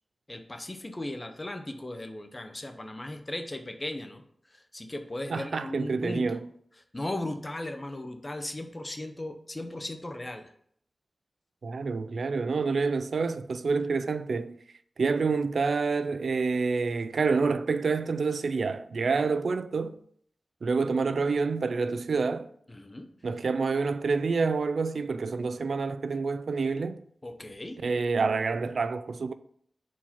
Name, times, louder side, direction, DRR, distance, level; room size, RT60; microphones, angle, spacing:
voice 1, 0.3-4.2 4.7-6.4 6.9-10.5 22.7-23.1 27.2-27.8, left 1 dB, 25° left, 0.7 m, -37 dB
voice 2, 5.3-6.5 11.6-14.6 15.0-20.0 20.6-22.5 23.2-27.0 27.8-29.3, right 4 dB, 85° right, 0.3 m, -28 dB
4.5 x 4.3 x 5.7 m
wide cardioid pair, 110°, 0 cm